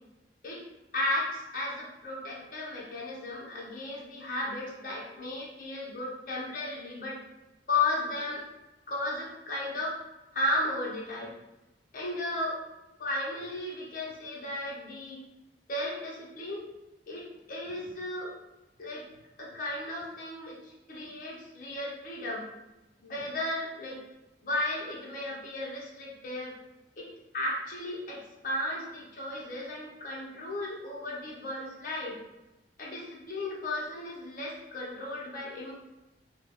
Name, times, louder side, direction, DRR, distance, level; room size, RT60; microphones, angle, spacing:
voice 1, 0.9-7.2 7.7-8.4 8.9-10.0 10.3-11.3 11.9-12.6 13.0-15.2 15.7-16.6 17.1-18.3 18.8-19.0 19.4-22.4 23.0-24.0 24.4-26.5 27.0-27.1 27.3-32.2 32.8-35.8, left 2 dB, 50° left, -4 dB, 0.7 m, -34 dB
2.3 x 2.0 x 3.5 m, 0.98 s
head